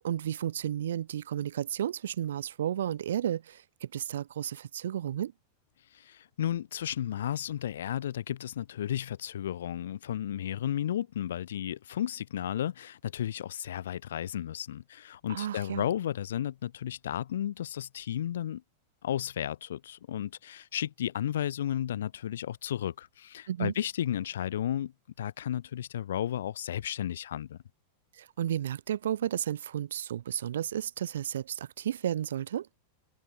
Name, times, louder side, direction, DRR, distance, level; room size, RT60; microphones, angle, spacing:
voice 1, 0.0-5.3 15.3-15.9 23.5-23.7 28.1-32.7, right 10 dB, 85° right, 0.5 m, -33 dB
voice 2, 5.9-18.6 19.0-24.9 25.2-27.6, left 10 dB, 85° left, 0.4 m, -33 dB
supercardioid pair, 130°, 0 cm